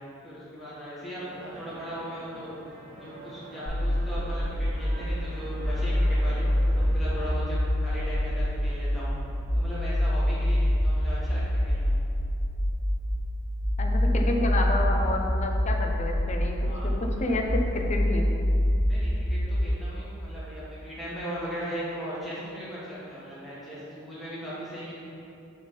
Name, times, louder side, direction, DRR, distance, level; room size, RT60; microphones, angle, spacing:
voice 1, 0.2-2.5 2.9-6.4 6.7-9.1 9.5-11.9 16.6-16.9 17.1-17.3 18.9-24.9, equal, ahead, -10 dB, 1.6 m, -38 dB
sound 1, 1.2-7.0, right 1 dB, 50° right, 1.1 m, -46 dB
sound 2, 3.7-19.7, left 1 dB, 85° left, 1.2 m, -26 dB
voice 2, 13.8-18.3, left 2 dB, 35° left, 2 dB, 0.7 m, -30 dB
8.4 x 3.5 x 5.2 m, 2.7 s
head